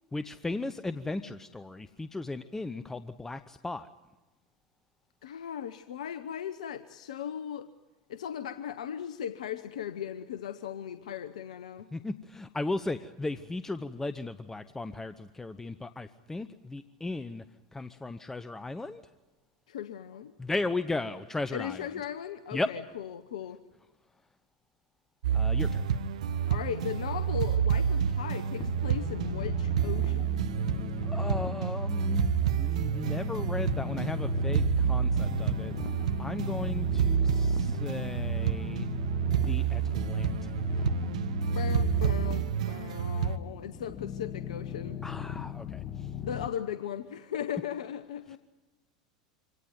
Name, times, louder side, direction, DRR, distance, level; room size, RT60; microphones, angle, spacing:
voice 1, 0.1-3.9 11.9-17.4 17.7-19.0 20.4-21.9 22.5-22.7 25.3-25.9 31.1-35.7 36.2-38.9 39.3-40.5 45.0-46.1 48.3-48.4, left 2 dB, 10° left, 12 dB, 0.8 m, -36 dB
voice 2, 5.2-7.7 8.1-11.9 19.7-20.3 21.5-23.6 26.5-30.4 41.4-45.0 46.2-48.4, left 9 dB, 70° left, 12 dB, 0.9 m, -37 dB
sound 1, 25.2-43.4, right 7 dB, 70° right, 0.9 m, -29 dB
sound 2, 28.6-46.5, left 8 dB, 35° left, 1.3 m, -39 dB
25.5 x 18.0 x 9.5 m, 1.1 s
hypercardioid pair, 85°, 4 cm